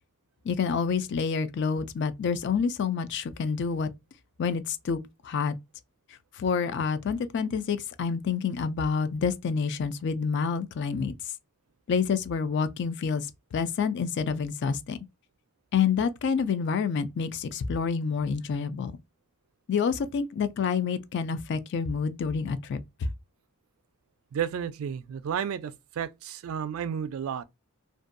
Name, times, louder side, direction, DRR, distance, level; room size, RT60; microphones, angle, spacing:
voice 1, 0.4-3.9 4.4-5.5 6.3-11.1 11.9-15.0 15.7-19.0 19.7-22.8, left 6 dB, 50° left, 0.3 m, -28 dB
voice 2, 24.3-27.4, right 8 dB, 65° right, 0.3 m, -32 dB
2.6 x 2.2 x 2.4 m
head